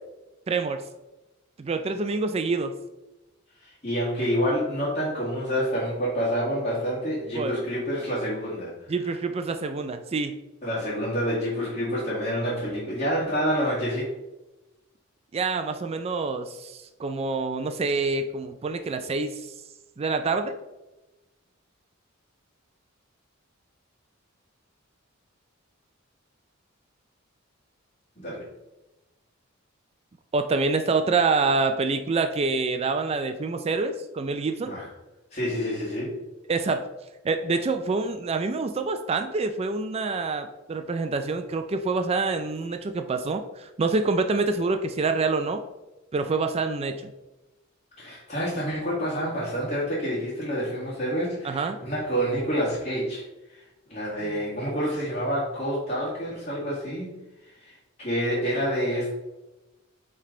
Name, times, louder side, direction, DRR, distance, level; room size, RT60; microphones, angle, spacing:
voice 1, 0.5-0.8 1.6-2.7 7.3-7.5 8.9-10.3 15.3-19.5 20.0-20.6 30.3-34.7 36.5-36.9 37.2-45.6 46.1-47.1 51.4-51.8, right 3 dB, 30° right, 7 dB, 0.3 m, -26 dB
voice 2, 3.6-9.1 10.6-14.1 28.2-28.5 34.6-34.9 35.3-36.2 48.0-53.3 53.5-53.6 53.9-59.1, equal, 35° left, -10 dB, 1.8 m, -28 dB
8.6 x 3.4 x 3.8 m, 1.0 s
head